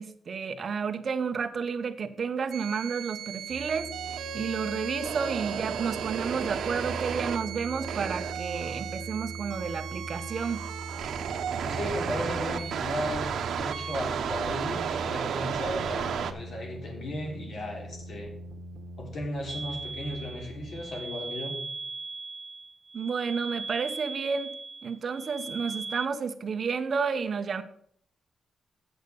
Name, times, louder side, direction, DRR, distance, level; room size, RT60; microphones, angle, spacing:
voice 1, 0.0-3.9 4.3-10.6 22.9-24.5 24.8-27.6, right 5 dB, 45° right, 8 dB, 0.9 m, -31 dB
sound 1, 2.5-16.3, right 7 dB, 85° right, 0.9 m, -34 dB
sound 2, 3.5-20.9, right 2 dB, 65° right, 1.5 m, -42 dB
voice 2, 11.6-13.3 13.6-18.3 19.0-21.6, left 1 dB, 60° left, 0 dB, 3.4 m, -35 dB
sound 3, 19.5-26.1, right 3 dB, 25° right, 0.3 m, -39 dB
8.7 x 6.5 x 6.8 m, 0.65 s
wide cardioid pair, 160°, 0 cm